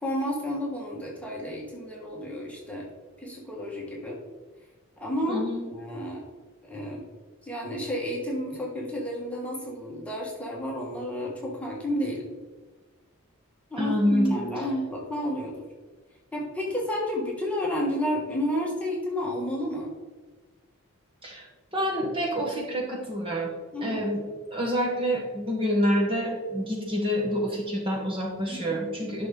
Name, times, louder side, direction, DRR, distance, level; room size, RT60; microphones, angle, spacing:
voice 1, 0.0-2.9 3.2-4.2 5.0-5.4 5.7-6.3 6.6-7.1 7.4-12.3 13.7-15.6 16.3-19.9 23.7-24.0 28.5-29.1, equal, 5° left, -3 dB, 1.6 m, -31 dB
voice 2, 5.3-5.6 13.8-14.4 21.2-21.5 21.7-23.5 23.8-29.3, equal, 25° right, -2 dB, 1.3 m, -27 dB
10.5 x 6.0 x 3.9 m, 1.3 s
head